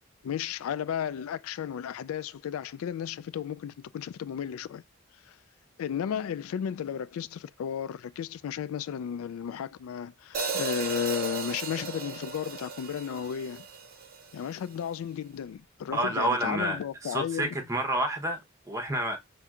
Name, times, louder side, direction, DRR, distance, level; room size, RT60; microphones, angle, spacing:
voice 1, 0.2-4.8 5.3-5.4 5.8-13.6 14.3-17.6, left 8 dB, 85° left, 0.3 m, -34 dB
Hi-hat, 10.3-14.5, right 5 dB, 45° right, 0.6 m, -36 dB
voice 2, 15.9-19.2, right 1 dB, 15° right, 0.8 m, -29 dB
5.8 x 2.7 x 2.4 m
head